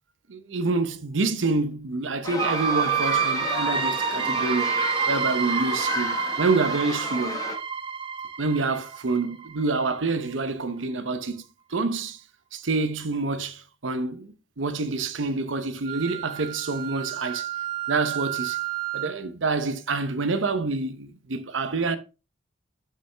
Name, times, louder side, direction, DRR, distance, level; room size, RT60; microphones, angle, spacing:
voice 1, 0.3-4.7 5.1-7.4 8.4-11.4 11.7-12.2 12.5-17.5 17.9-18.6 18.9-22.0, right 3 dB, 85° right, 0.8 m, -27 dB
sound 1, 2.2-7.6, left 3 dB, 20° left, 1.2 m, -32 dB
sound 2, 2.4-10.0, right 7 dB, 30° right, 0.5 m, -28 dB
Wind instrument woodwind instrument, 15.8-19.2, right 15 dB, 55° right, 1.7 m, -32 dB
6.8 x 6.1 x 3.3 m
head